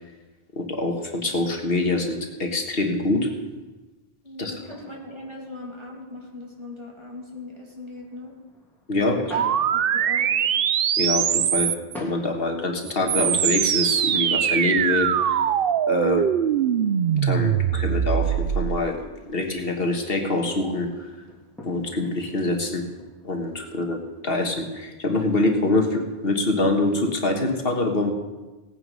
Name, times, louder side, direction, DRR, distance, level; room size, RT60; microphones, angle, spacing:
voice 1, 0.5-3.3 4.4-4.5 8.9-9.2 11.0-11.7 12.0-15.4 15.9-16.3 17.2-19.0 19.3-21.1 21.6-22.8 23.2-24.0 24.2-28.1, left 2 dB, 65° left, 3 dB, 1.7 m, -25 dB
voice 2, 4.2-8.4 8.9-10.3, left 2 dB, 25° right, -2 dB, 2.5 m, -39 dB
sound 1, 4.5-24.3, left 1 dB, ahead, 2.6 m, -47 dB
sound 2, 9.3-12.0 12.8-18.8, right 9 dB, 65° right, 0.8 m, -22 dB
17.5 x 9.2 x 5.4 m, 1.2 s
omnidirectional pair, 1.0 m